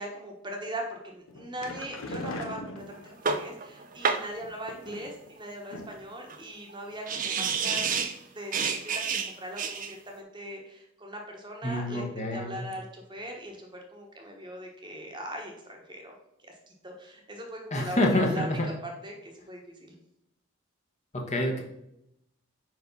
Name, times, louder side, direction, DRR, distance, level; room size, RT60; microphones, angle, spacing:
voice 1, 0.0-7.9 8.3-16.1 16.4-16.5 16.8-19.9, right 1 dB, 20° right, 1 dB, 1.1 m, -40 dB
sound 1, 1.3-3.4 4.4-5.3 5.7-6.1 6.4-6.5 6.9-7.0, left 1 dB, 70° left, 0.9 m, -40 dB
sound 2, 2.9-3.0 3.2-4.3 6.3-6.4 6.7-6.8 7.1-8.2 8.5-9.9, right 5 dB, 40° right, 0.5 m, -29 dB
voice 2, 11.6-12.6 17.7-18.7 21.1-21.6, left 1 dB, 30° left, 1 dB, 0.9 m, -27 dB
5.0 x 4.8 x 5.3 m, 0.80 s
head